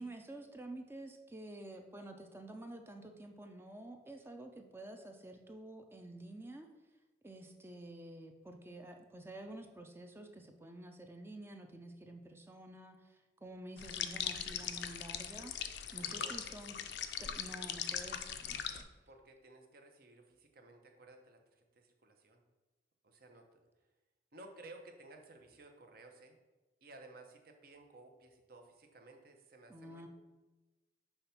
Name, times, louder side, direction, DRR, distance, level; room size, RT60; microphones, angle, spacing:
voice 1, 0.0-6.7 7.2-15.5 15.9-16.8 17.2-18.9 29.7-30.1, right 1 dB, 15° right, 5 dB, 0.4 m, -49 dB
sound 1, 13.8-18.8, left 9 dB, 65° left, 0.4 m, -40 dB
voice 2, 15.9-16.7 19.1-22.4 23.0-23.6 24.3-26.4 26.8-30.0, right 2 dB, 55° right, 4 dB, 0.8 m, -56 dB
5.7 x 3.4 x 5.7 m, 1.1 s
head